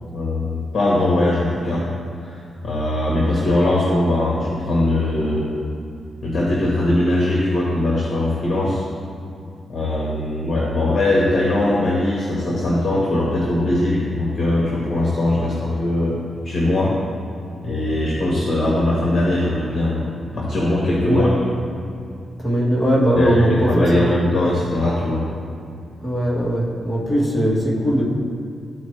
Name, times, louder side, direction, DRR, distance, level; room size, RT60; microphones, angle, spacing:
voice 1, 0.1-1.9 2.2-5.5 6.2-8.8 9.7-16.2 16.4-16.9 17.6-21.4 23.1-25.3, left 1 dB, 55° left, -5 dB, 1.2 m, -20 dB
voice 2, 22.4-24.0 26.0-28.0, equal, 10° left, -4 dB, 1.4 m, -19 dB
13.0 x 4.5 x 3.2 m, 2.4 s
wide cardioid pair, 140°, 0 cm